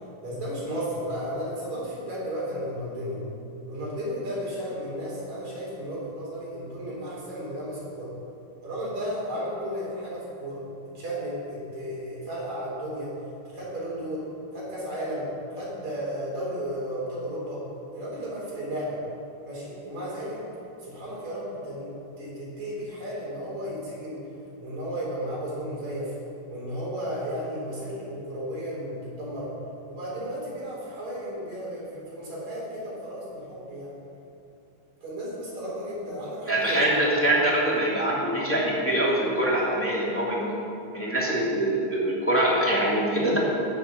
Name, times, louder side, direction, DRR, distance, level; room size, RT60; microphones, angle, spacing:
voice 1, 0.2-3.2 3.7-8.1 8.6-10.6 11.0-13.1 13.5-14.3 14.5-17.6 17.9-19.0 19.4-20.4 20.8-24.2 24.6-26.1 26.5-29.5 29.9-33.9 35.0-37.0, equal, 70° right, -6 dB, 5.5 m, -34 dB
voice 2, 36.5-40.5 40.9-43.4, right 1 dB, 5° left, -5 dB, 2.4 m, -24 dB
17.5 x 7.1 x 7.2 m, 2.7 s
omnidirectional pair, 3.3 m